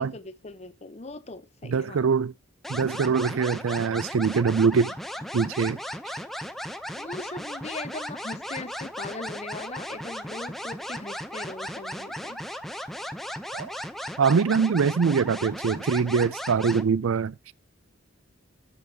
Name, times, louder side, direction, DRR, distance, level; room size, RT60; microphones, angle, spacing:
voice 1, 0.0-2.1 7.0-12.4, left 2 dB, 30° left, 0.9 m, -39 dB
voice 2, 1.6-2.3 2.7-4.9 5.3-5.8 13.5-13.7 14.2-17.3, right 5 dB, 75° right, 0.4 m, -23 dB
sound 1, 2.6-16.8, equal, ahead, 0.7 m, -36 dB
14.0 x 5.6 x 2.9 m
head